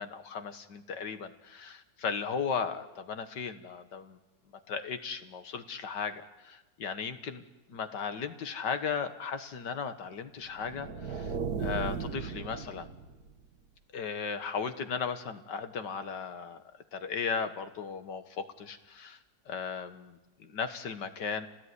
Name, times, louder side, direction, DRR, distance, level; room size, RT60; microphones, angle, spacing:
voice 1, 0.0-4.2 4.7-7.4 7.7-12.9 13.9-16.6 16.9-19.2 19.5-21.5, left 6 dB, 90° left, 9 dB, 2.1 m, -36 dB
sound 1, 10.5-13.5, right 6 dB, 65° right, 1.6 m, -36 dB
28.5 x 18.5 x 9.8 m, 1.1 s
omnidirectional pair, 1.8 m